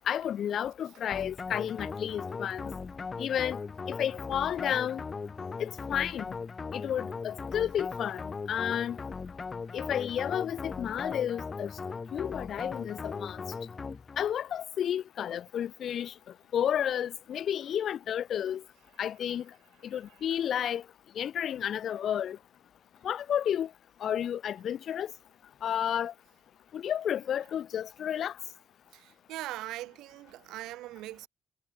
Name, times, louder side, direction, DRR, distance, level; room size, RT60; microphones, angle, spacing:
voice 1, 0.1-2.7 3.2-3.6 3.9-5.0 5.6-6.3 6.7-8.2 8.5-9.0 9.7-11.7 12.1-13.4 14.2-16.1 16.5-18.6 19.0-19.4 19.9-20.8 21.2-22.4 23.0-23.7 24.0-25.1 25.6-26.1 26.7-28.3, left 9 dB, 65° left, 0.3 m, -31 dB
sound 1, 1.1-14.3, left 4 dB, 40° left, 0.7 m, -39 dB
voice 2, 19.9-20.3 28.9-31.3, right 16 dB, 90° right, 1.1 m, -41 dB
supercardioid pair, 65°, 0 cm